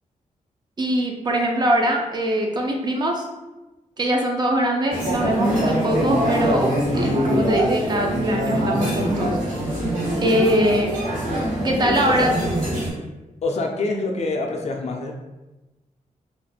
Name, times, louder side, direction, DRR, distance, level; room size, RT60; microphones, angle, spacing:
voice 1, 0.8-3.3 4.0-9.4 10.2-10.9 11.6-12.3, right 1 dB, 35° right, 2 dB, 0.3 m, -22 dB
sound 1, 4.9-12.9, equal, 85° right, 1.2 m, -23 dB
voice 2, 11.8-12.3 13.4-15.2, left 3 dB, 55° left, 2 dB, 0.4 m, -26 dB
2.3 x 2.1 x 3.2 m, 1.1 s
wide cardioid pair, 140°, 14 cm